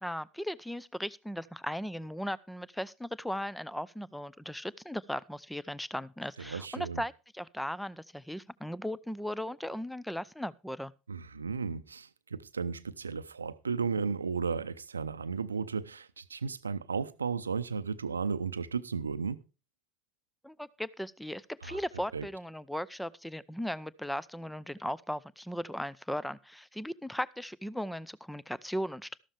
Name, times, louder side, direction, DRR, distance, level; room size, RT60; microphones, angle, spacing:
voice 1, 0.0-10.9 20.4-29.2, equal, 5° left, 0.6 m, -37 dB
voice 2, 6.4-7.0 11.1-19.4 21.6-21.8 22.1-22.3, right 5 dB, 85° right, 0.6 m, -34 dB
13.5 x 12.5 x 3.4 m
figure-of-eight pair, 70°, 0 cm